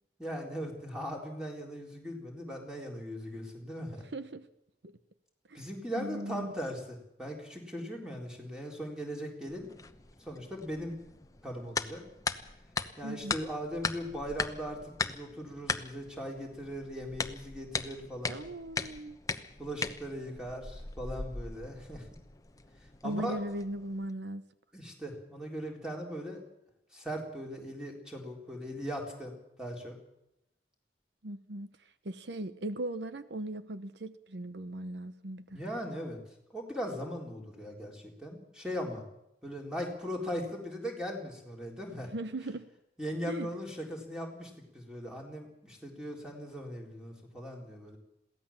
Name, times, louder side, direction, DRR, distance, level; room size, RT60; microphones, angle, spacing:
voice 1, 0.2-4.0 5.5-9.9 10.2-11.0 11.4-12.0 13.0-18.4 19.6-22.1 23.0-23.4 24.7-26.4 26.9-29.3 29.6-29.9 35.5-36.2 36.5-39.0 39.4-42.1 43.0-48.0, equal, 5° right, 3.9 m, -39 dB
voice 2, 4.1-4.5 4.8-4.9 5.5-5.6 5.9-6.6 13.0-13.3 18.3-19.2 23.0-24.4 31.2-35.6 42.0-42.7 43.3-43.5, right 1 dB, 75° right, 0.9 m, -38 dB
sound 1, 9.5-24.1, left 4 dB, 20° left, 0.9 m, -39 dB
22.5 x 17.0 x 7.3 m
head